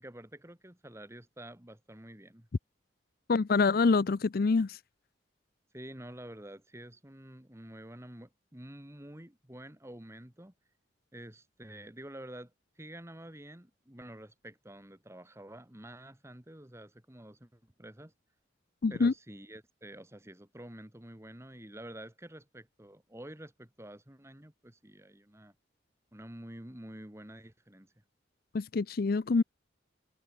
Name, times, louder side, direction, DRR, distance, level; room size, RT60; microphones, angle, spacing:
voice 1, 0.0-2.5 5.7-10.5 11.1-18.1 18.9-25.6 26.1-27.9, right 1 dB, 15° right, 1.9 m, -48 dB
voice 2, 3.3-4.8 18.8-19.1 28.5-29.4, left 4 dB, 50° left, 0.5 m, -26 dB
head